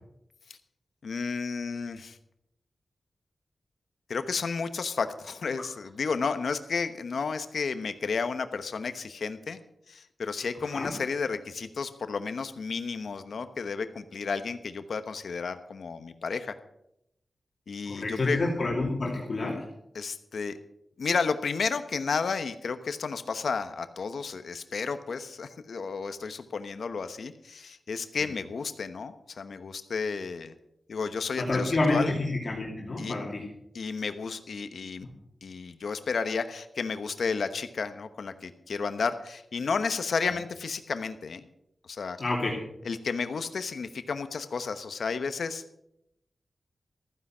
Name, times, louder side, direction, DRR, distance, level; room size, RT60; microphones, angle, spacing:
voice 1, 1.0-2.2 4.1-9.6 9.9-16.5 17.7-18.4 19.9-20.6 21.0-30.5 30.9-32.2 33.0-33.1 33.7-35.1 35.4-41.5 41.9-42.2 42.8-45.6, left 5 dB, 70° left, 10 dB, 1.0 m, -32 dB
voice 2, 17.9-19.6 31.4-33.5 35.0-35.1 42.2-42.6, left 2 dB, 40° left, -2 dB, 2.8 m, -28 dB
14.5 x 9.9 x 6.1 m, 0.79 s
wide cardioid pair, 175°, 0 cm